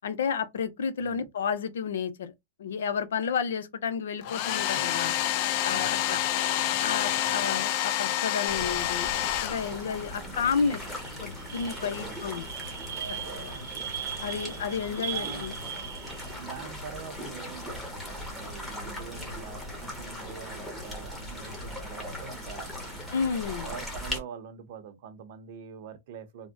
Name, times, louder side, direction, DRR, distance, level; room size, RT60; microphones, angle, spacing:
voice 1, 0.0-2.3 2.6-5.1 5.6-6.2 6.8-9.1 9.4-10.8 11.2-12.4 13.3-13.5 14.2-15.5 23.1-23.7, left 6 dB, 80° left, 0.6 m, -31 dB
Domestic sounds home sounds, 4.2-10.1, left 12 dB, 40° left, 0.3 m, -28 dB
voice 2, 4.7-5.2 5.7-6.0 7.2-7.5 10.0-10.4 11.9-12.2 13.5-13.9 14.3-14.6 15.1-16.0 16.4-23.0 23.6-26.5, right 7 dB, 50° right, 0.7 m, -45 dB
sound 1, 8.5-24.2, left 1 dB, 5° left, 1.0 m, -39 dB
sound 2, 9.7-9.9 10.2-16.6, right 9 dB, 80° right, 0.9 m, -39 dB
3.4 x 2.1 x 2.5 m
supercardioid pair, 160°, 0 cm